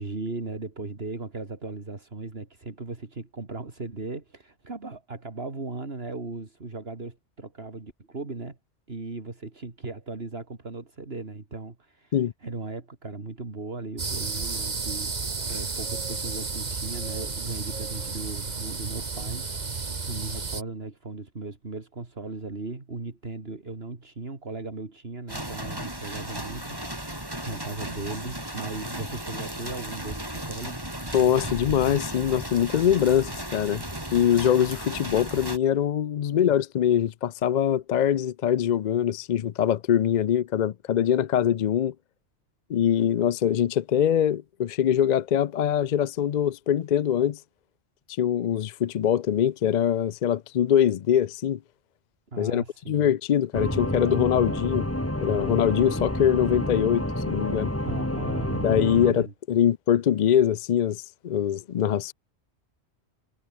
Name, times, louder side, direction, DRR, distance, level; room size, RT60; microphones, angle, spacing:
voice 1, 0.0-8.6 8.9-30.9 52.3-53.1 57.8-58.7 59.1-59.3, right 3 dB, 65° right, 2.9 m, -37 dB
sound 1, 14.0-20.6, right 4 dB, 40° right, 1.5 m, -32 dB
sound 2, 25.3-35.6, right 1 dB, 20° right, 5.0 m, -35 dB
voice 2, 31.1-33.8 34.1-41.9 42.7-47.4 48.2-51.6 52.4-54.9 55.2-57.7 58.6-62.1, left 9 dB, 55° left, 0.5 m, -23 dB
sound 3, 53.5-59.1, left 1 dB, 10° left, 3.0 m, -29 dB
omnidirectional pair, 1.1 m